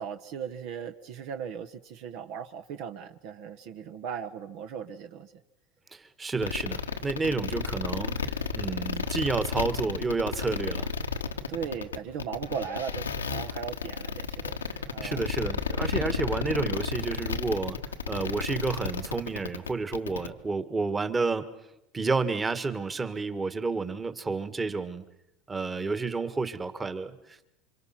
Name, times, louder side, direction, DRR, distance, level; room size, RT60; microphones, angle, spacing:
voice 1, 0.0-5.3 7.2-7.4 11.5-14.6 14.9-15.3, right 7 dB, 60° right, 8 dB, 1.2 m, -37 dB
voice 2, 5.9-10.9 15.0-21.6 21.9-25.0 25.5-27.5, right 4 dB, 20° right, 12 dB, 1.7 m, -30 dB
sound 1, 6.4-20.3, left 5 dB, 85° left, 1.2 m, -32 dB
29.0 x 25.5 x 5.9 m, 0.86 s
hypercardioid pair, 80°, 0 cm